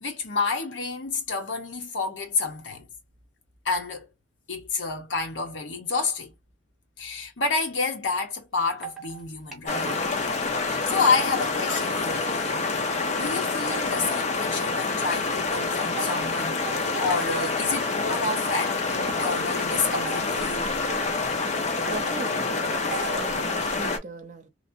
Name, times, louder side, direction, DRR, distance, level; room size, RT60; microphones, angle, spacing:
voice 1, 0.0-2.9 3.6-4.1 4.5-6.3 7.0-10.0 10.6-12.6 13.1-20.7, left 4 dB, 75° left, 1.1 m, -29 dB
sound 1, 8.8-9.2 9.5-10.2 10.6-12.3 12.6-13.3 13.7-15.0 16.0-16.2 16.7-17.6 18.1-18.5 19.1-20.5 20.9-22.2 22.9-23.4, right 6 dB, ahead, 0.8 m, -40 dB
sound 2, 9.7-24.0, left 3 dB, 35° left, 0.6 m, -27 dB
voice 2, 21.8-24.5, right 3 dB, 40° right, 0.7 m, -38 dB
3.1 x 2.0 x 2.6 m
head